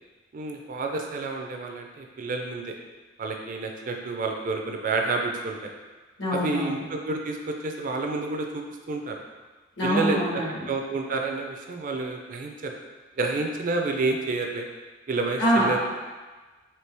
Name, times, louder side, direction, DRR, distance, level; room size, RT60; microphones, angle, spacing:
voice 1, 0.3-2.7 3.2-5.7 6.3-9.2 9.8-10.2 10.7-12.8 13.2-14.7 15.1-15.8, right 3 dB, 40° right, 2 dB, 0.4 m, -29 dB
voice 2, 6.2-6.8 9.8-10.7 15.4-15.8, equal, 65° left, -7 dB, 1.4 m, -24 dB
4.4 x 2.8 x 3.2 m, 1.3 s
head